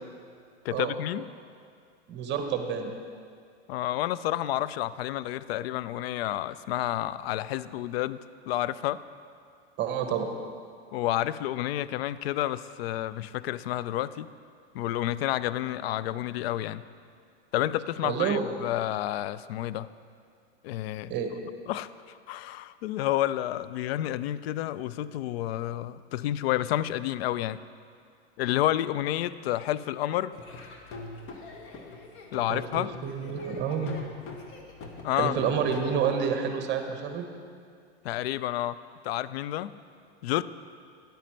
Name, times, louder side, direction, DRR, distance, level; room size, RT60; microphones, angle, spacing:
voice 1, 0.6-1.3 3.7-8.2 8.5-9.0 10.9-14.3 14.7-16.8 17.5-19.9 20.6-21.1 21.7-27.6 28.4-30.4 32.3-32.9 35.0-35.3 38.0-39.7 40.2-40.4, left 13 dB, 60° left, 16 dB, 0.4 m, -30 dB
voice 2, 2.1-2.9 9.8-10.3 18.0-18.4 21.1-21.3 32.5-34.0 35.1-37.2, right 7 dB, 30° right, 5 dB, 1.1 m, -29 dB
Laughter / Drum, 30.3-36.3, left 2 dB, 35° left, 1.2 m, -43 dB
10.5 x 8.8 x 4.4 m, 2.2 s
hypercardioid pair, 105°, 35 cm